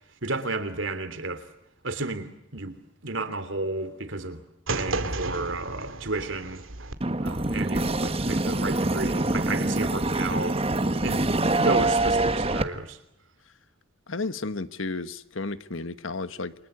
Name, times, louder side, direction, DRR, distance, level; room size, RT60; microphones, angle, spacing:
voice 1, 0.2-1.5 1.8-2.7 3.0-4.4 4.7-6.6 7.2-10.6 11.0-13.0, right 2 dB, 70° right, 3.1 m, -32 dB
sound 1, 4.7-7.0, right 3 dB, 90° right, 2.3 m, -32 dB
sound 2, 7.0-12.6, right 2 dB, 30° right, 1.4 m, -25 dB
voice 2, 14.1-16.5, left 3 dB, 80° left, 1.4 m, -32 dB
29.5 x 24.0 x 8.0 m
head